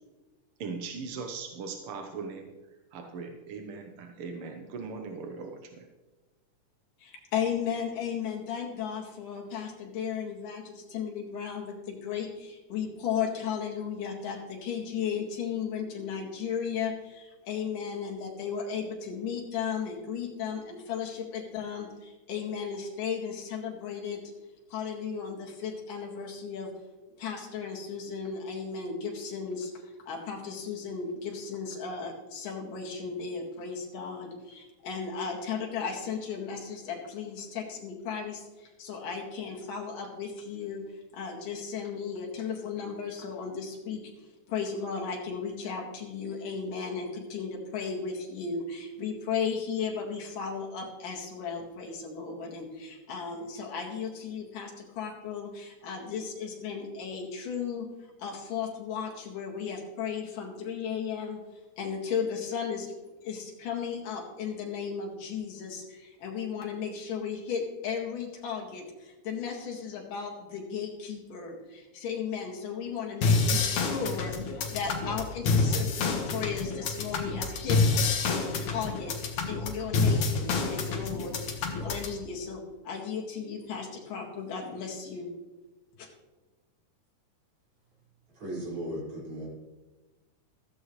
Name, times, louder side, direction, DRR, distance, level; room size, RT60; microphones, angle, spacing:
voice 1, 0.6-2.5 2.9-5.8, right 4 dB, 70° right, 4 dB, 1.3 m, -39 dB
voice 2, 7.0-24.2 24.7-26.7 27.2-40.8 41.1-44.0 44.5-57.9 58.2-61.4 61.8-62.9 63.2-77.8 78.3-79.2 79.5-81.4 81.8-85.3 86.0-86.1, left 6 dB, 85° left, -1 dB, 3.6 m, -35 dB
sound 1, 73.2-82.2, left 4 dB, 70° left, 2.7 m, -28 dB
voice 3, 88.4-89.5, right 1 dB, 40° right, -7 dB, 6.3 m, -36 dB
15.0 x 14.0 x 3.2 m, 1.2 s
omnidirectional pair, 3.7 m